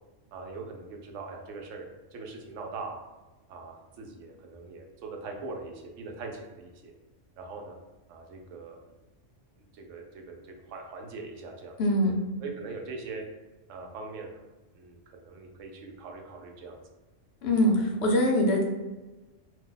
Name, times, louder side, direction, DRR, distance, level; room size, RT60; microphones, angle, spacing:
voice 1, 0.3-3.0 3.5-6.9 7.4-7.7 8.1-8.9 9.7-11.8 12.4-13.2 13.7-14.4 14.7-16.8, right 3 dB, 90° right, 2 dB, 1.0 m, -41 dB
voice 2, 11.8-12.1 17.4-18.6, left 1 dB, 65° left, 0 dB, 0.8 m, -23 dB
2.7 x 2.1 x 3.7 m, 1.1 s
omnidirectional pair, 1.3 m